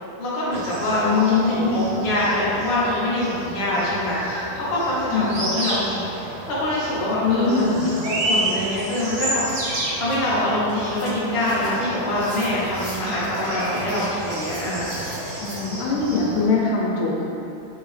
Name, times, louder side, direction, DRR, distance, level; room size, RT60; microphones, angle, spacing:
voice 1, 0.2-7.8 8.2-15.0 15.5-15.8, left 1 dB, 65° left, -8 dB, 0.6 m, -25 dB
sound 1, 0.5-16.5, right 1 dB, 65° right, 1.4 m, -31 dB
voice 2, 1.0-1.9 5.1-5.4 7.2-7.9 15.4-17.2, left 4 dB, 90° left, -4 dB, 1.5 m, -22 dB
sound 2, 8.8-15.6, equal, 35° right, 0.9 m, -41 dB
3.5 x 2.7 x 3.2 m, 2.8 s
omnidirectional pair, 2.3 m